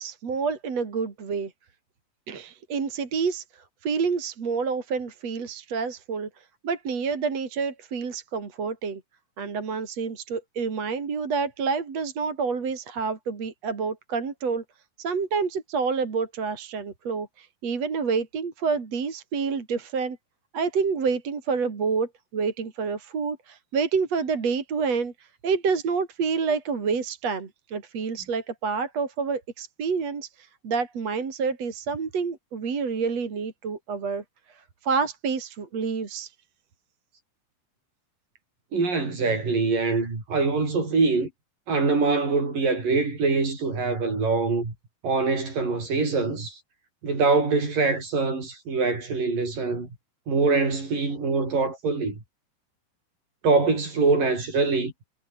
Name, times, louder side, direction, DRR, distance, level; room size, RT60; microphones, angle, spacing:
voice 1, 0.0-1.5 2.3-6.3 6.6-9.0 9.4-14.6 15.0-20.2 20.5-25.1 25.4-36.3, right 5 dB, 45° right, 4.2 m, -28 dB
voice 2, 38.7-41.3 41.7-44.7 45.0-46.6 47.0-49.9 50.3-52.2 53.4-54.9, right 4 dB, 60° right, 9.0 m, -24 dB
omnidirectional pair, 4.3 m